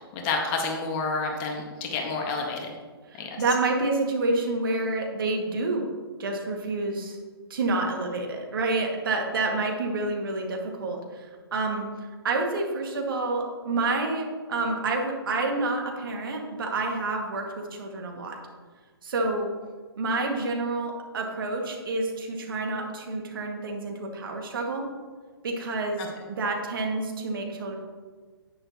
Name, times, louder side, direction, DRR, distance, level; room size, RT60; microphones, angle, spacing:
voice 1, 0.1-2.7 3.2-3.4 26.0-26.1, left 4 dB, 30° left, 1 dB, 1.6 m, -29 dB
voice 2, 3.1-5.9 6.2-7.2 7.5-11.9 12.2-18.4 19.0-19.5 20.0-24.9 25.4-27.8, right 3 dB, 55° right, 1 dB, 2.0 m, -28 dB
10.5 x 9.2 x 3.0 m, 1.5 s
figure-of-eight pair, 130°, 13 cm